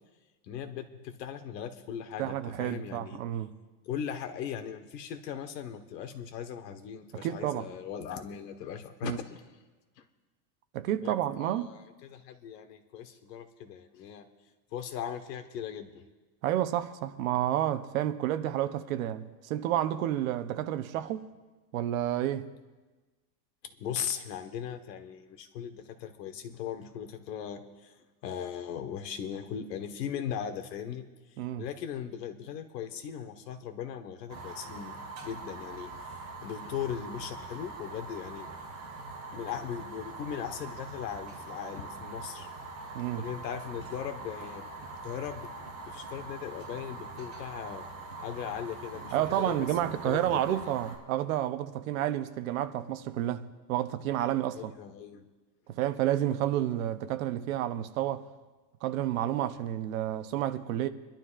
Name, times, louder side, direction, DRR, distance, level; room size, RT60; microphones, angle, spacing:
voice 1, 0.5-2.3 2.6-3.2 3.8-9.4 11.0-14.2 14.7-16.0 23.8-27.9 28.2-31.1 31.6-38.5 39.3-42.5 43.2-44.6 45.0-45.5 45.8-47.8 48.2-50.7 54.5-55.2, left 8 dB, 80° left, 1.5 m, -39 dB
voice 2, 2.2-3.5 7.1-7.7 9.0-9.2 10.7-11.7 16.4-21.3 21.7-22.5 31.4-31.6 42.9-43.3 49.1-54.7 55.7-58.2 58.8-60.9, right 12 dB, 55° right, 0.8 m, -30 dB
Fire, 34.3-51.0, right 3 dB, 30° right, 3.9 m, -43 dB
26.5 x 12.0 x 2.5 m
supercardioid pair, 180°, 49 cm